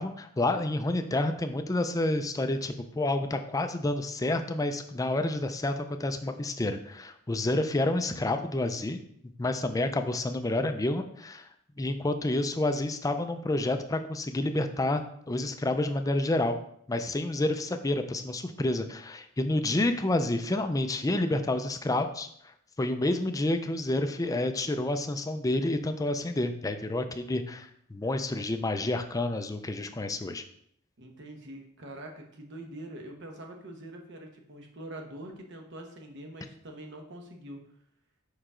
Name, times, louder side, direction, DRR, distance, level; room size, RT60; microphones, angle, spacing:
voice 1, 0.0-9.0 9.4-11.5 11.8-16.6 16.9-22.3 22.8-30.4, left 2 dB, 15° left, 7 dB, 0.4 m, -29 dB
voice 2, 31.0-37.6, right 1 dB, 60° right, 2 dB, 1.1 m, -44 dB
5.6 x 4.8 x 3.7 m, 0.68 s
head